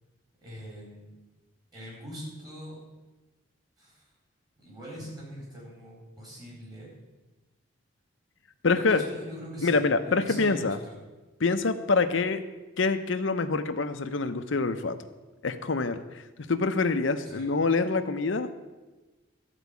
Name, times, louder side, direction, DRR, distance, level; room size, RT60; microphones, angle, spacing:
voice 1, 0.4-1.2 1.7-2.8 3.8-4.1 4.6-6.9 8.8-10.9 17.2-17.5, equal, 20° right, -5 dB, 4.4 m, -42 dB
voice 2, 8.6-9.0 9.6-10.8 11.4-12.4 12.8-15.0 15.4-16.2 16.5-18.5, left 3 dB, 70° left, 9 dB, 0.7 m, -26 dB
12.5 x 5.0 x 8.2 m, 1.2 s
head